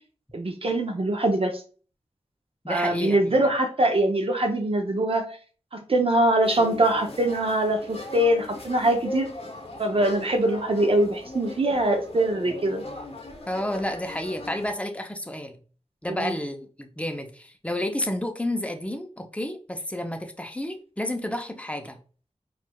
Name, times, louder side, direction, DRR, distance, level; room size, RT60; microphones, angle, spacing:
voice 1, 0.3-1.6 2.7-5.4 5.7-9.3 9.8-12.8 16.1-16.3, right 1 dB, 50° right, 4 dB, 0.5 m, -23 dB
voice 2, 2.6-3.4 13.5-15.6 16.0-22.0, left 1 dB, 10° left, 5 dB, 0.6 m, -31 dB
sound 1, 6.4-14.7, left 2 dB, 55° left, 0.8 m, -39 dB
4.4 x 2.3 x 2.2 m, 0.39 s
wide cardioid pair, 60°, 12 cm